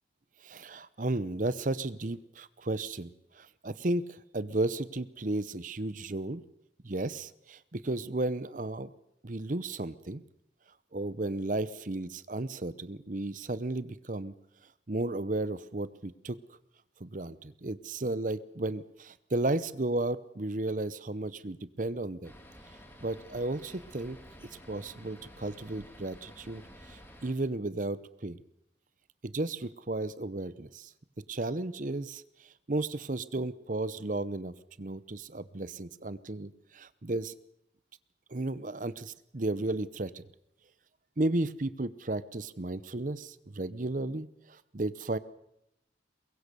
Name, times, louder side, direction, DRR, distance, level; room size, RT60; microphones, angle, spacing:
voice 1, 0.4-6.4 6.8-8.9 9.2-10.2 10.9-14.3 14.9-16.4 17.0-22.3 23.0-28.4 29.2-30.9 31.3-37.3 38.3-40.2 41.2-45.2, right 2 dB, 45° right, 16 dB, 0.8 m, -34 dB
sound 1, 22.2-27.3, equal, 10° left, 2.8 m, -52 dB
24.0 x 21.5 x 6.9 m, 0.81 s
head